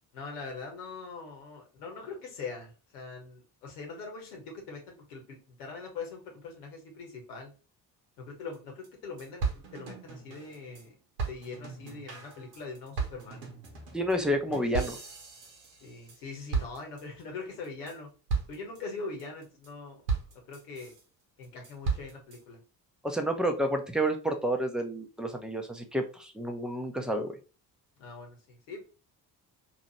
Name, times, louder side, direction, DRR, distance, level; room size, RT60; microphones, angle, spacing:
voice 1, 0.1-7.5 8.2-10.9 11.2-13.4 14.5-14.6 15.8-18.1 18.5-20.0 20.5-20.9 21.4-22.6 28.0-28.9, left 4 dB, 65° left, 1 dB, 1.2 m, -42 dB
sound 1, 8.5-8.6 8.8-8.9 9.2-10.8 11.2-16.2 16.5-17.2 17.6-17.9 18.3-18.8 19.2-19.7 20.1-21.0 21.4-22.4, right 5 dB, 75° right, 0.9 m, -35 dB
voice 2, 13.9-15.0 23.0-27.3, right 1 dB, ahead, 4 dB, 0.5 m, -30 dB
2.9 x 2.4 x 4.1 m, 0.34 s
figure-of-eight pair, 45°, 50 cm